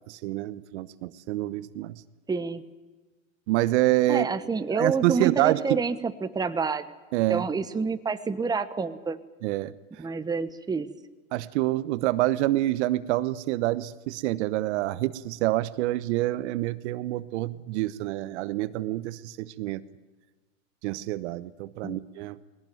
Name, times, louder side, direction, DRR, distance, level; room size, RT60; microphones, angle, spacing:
voice 1, 0.1-2.0 3.5-4.2 4.7-5.8 7.1-7.5 9.4-9.7 11.3-19.8 20.8-22.4, right 16 dB, 60° right, 15 dB, 1.0 m, -27 dB
voice 2, 2.3-2.6 4.1-6.9 7.3-9.2 10.0-10.9 21.8-22.0, right 4 dB, 10° right, 10 dB, 1.1 m, -28 dB
20.5 x 18.0 x 9.4 m, 1.3 s
hypercardioid pair, 105°, 39 cm